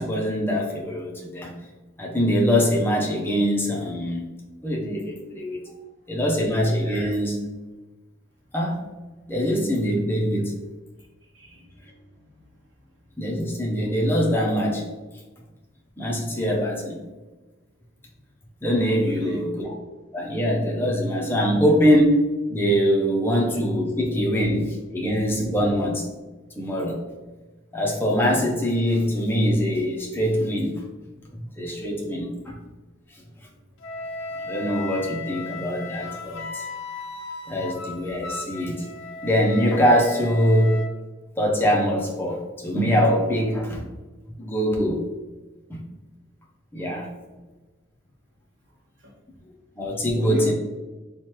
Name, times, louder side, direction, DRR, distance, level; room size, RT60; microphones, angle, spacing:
voice 1, 0.0-1.5 2.0-4.3 4.6-5.6 6.1-7.4 8.5-8.9 9.3-10.5 13.2-14.9 16.0-17.0 18.6-19.7 20.1-26.1 26.5-27.0 27.7-30.8 31.3-32.6 34.4-36.7 37.5-38.9 39.2-40.8 41.4-43.8 44.4-45.0 45.7-45.8 46.7-47.1 49.8-50.5, equal, 10° left, -2 dB, 0.5 m, -23 dB
voice 2, 11.3-12.0 19.0-19.4 49.0-49.1 50.1-50.5, left 2 dB, 60° right, -2 dB, 0.8 m, -34 dB
Wind instrument woodwind instrument, 33.8-40.9, left 3 dB, 70° left, 0.4 m, -36 dB
3.0 x 2.1 x 3.0 m, 1.2 s
head